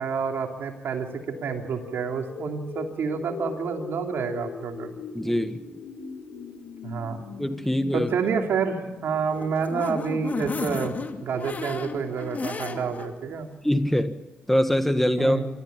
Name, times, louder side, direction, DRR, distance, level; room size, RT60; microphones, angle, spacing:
voice 1, 0.0-4.9 6.8-7.2 7.9-13.5 15.2-15.5, right 6 dB, 75° right, 3 dB, 3.0 m, -29 dB
sound 1, 1.0-9.9, left 6 dB, 85° left, 2.3 m, -41 dB
voice 2, 5.1-5.6 7.4-8.1 13.6-14.1 14.5-15.4, equal, 5° left, 9 dB, 1.6 m, -23 dB
sound 2, 9.1-13.1 13.5-13.6 13.9-14.0, left 4 dB, 45° left, 2.4 m, -33 dB
25.5 x 14.0 x 8.9 m, 1.2 s
cardioid pair, 70°, 4 cm